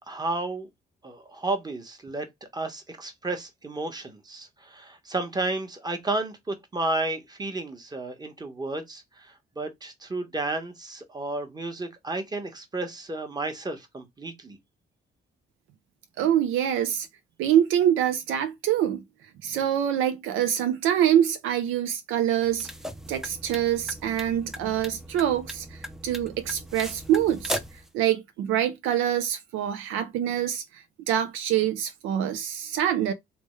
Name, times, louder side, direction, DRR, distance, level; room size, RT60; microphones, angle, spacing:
voice 1, 0.1-0.7 1.0-2.3 2.5-14.6, right 2 dB, 20° right, 0.9 m, -32 dB
voice 2, 16.2-17.1 17.4-19.0 19.4-22.7 23.1-27.6 27.9-33.1, right 10 dB, 90° right, 0.4 m, -25 dB
sound 1, 22.4-27.9, equal, ahead, 0.4 m, -38 dB
3.3 x 2.1 x 3.1 m
cardioid pair, 90°, 20 cm